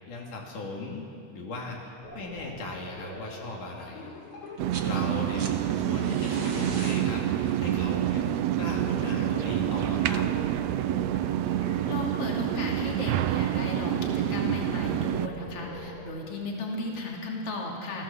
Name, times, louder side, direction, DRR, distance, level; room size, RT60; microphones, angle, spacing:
voice 1, 0.1-1.1 1.3-4.1 4.8-5.5 5.8-8.2 8.6-10.3, left 2 dB, 85° left, -1 dB, 4.2 m, -37 dB
sound 1, 2.0-16.0, left 1 dB, 70° left, 6.1 m, -43 dB
sound 2, 4.5-4.9 5.2-10.1 11.3-11.4, right 4 dB, 40° right, 2.0 m, -43 dB
sound 3, 4.6-15.3, right 12 dB, 75° right, 1.8 m, -27 dB
voice 2, 11.9-18.0, left 2 dB, 50° left, -1 dB, 3.8 m, -35 dB
28.5 x 16.5 x 7.2 m, 2.4 s
omnidirectional pair, 3.5 m